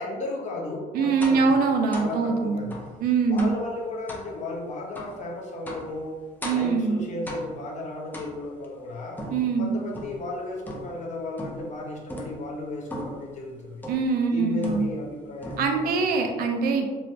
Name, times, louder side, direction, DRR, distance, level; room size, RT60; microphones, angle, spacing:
voice 1, 0.0-1.6 1.9-2.8 3.3-6.2 6.5-9.2 9.6-13.9 14.3-15.7 15.9-16.1, left 2 dB, 45° left, -2 dB, 0.7 m, -34 dB
voice 2, 0.9-2.6 3.0-3.5 6.4-7.0 9.3-9.8 13.9-14.9 15.6-16.9, right 4 dB, 60° right, 3 dB, 0.4 m, -23 dB
sound 1, 1.2-1.5 1.9-2.2 2.7-2.9 3.4-3.7 4.1-4.3 4.9-5.2 5.7-5.9 6.4-6.8 7.3-7.7 8.1-8.6 9.2-10.3 10.6-11.0 11.4-11.7 12.1-12.4 12.9-13.3 13.8-14.1 14.6-15.1 15.4-15.9, left 1 dB, 10° left, 0.4 m, -37 dB
3.0 x 2.1 x 2.6 m, 1.4 s
cardioid pair, 110°, 17 cm